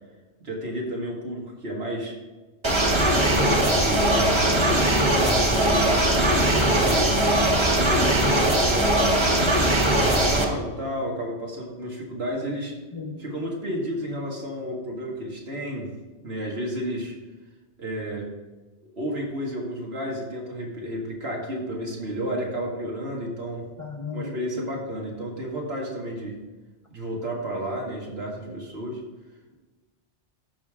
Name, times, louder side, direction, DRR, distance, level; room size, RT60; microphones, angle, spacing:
voice 1, 0.4-2.2 2.9-7.2 7.7-9.2 9.8-12.8 13.2-15.9 16.2-17.1 17.8-18.3 19.0-23.7 24.1-26.4 26.9-29.0, equal, 65° right, -2 dB, 2.1 m, -32 dB
sound 1, 2.6-10.5, right 1 dB, 25° right, 1.1 m, -20 dB
voice 2, 7.2-7.6 12.9-13.2 23.8-24.3, left 5 dB, 30° left, 0 dB, 1.1 m, -35 dB
13.0 x 5.1 x 3.6 m, 1.2 s
omnidirectional pair, 1.1 m